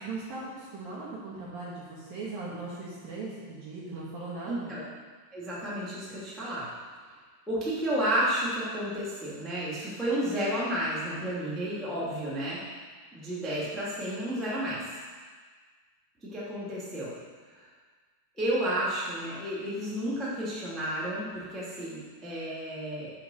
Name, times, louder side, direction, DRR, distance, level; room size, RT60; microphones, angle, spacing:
voice 1, 0.0-4.8, right 3 dB, 60° right, -6 dB, 2.6 m, -39 dB
voice 2, 4.4-4.8 5.3-6.7 7.5-12.6 13.1-14.8 16.2-17.1 17.5-17.6 18.4-23.1, right 1 dB, ahead, -8 dB, 1.2 m, -31 dB
9.4 x 7.4 x 6.6 m, 1.5 s
omnidirectional pair, 5.8 m